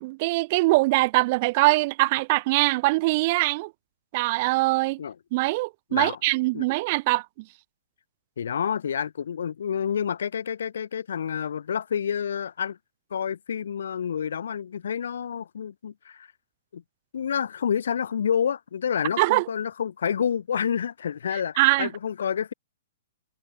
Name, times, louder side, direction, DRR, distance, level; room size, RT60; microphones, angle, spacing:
voice 1, 0.0-3.7 4.1-5.0 5.3-7.5 19.2-19.5 21.6-21.9, right 22 dB, 40° right, 0.6 m, -22 dB
voice 2, 8.4-12.8 13.1-16.3 16.7-16.8 17.1-22.5, left 8 dB, 75° left, 0.9 m, -28 dB
hypercardioid pair, 150°, 0 cm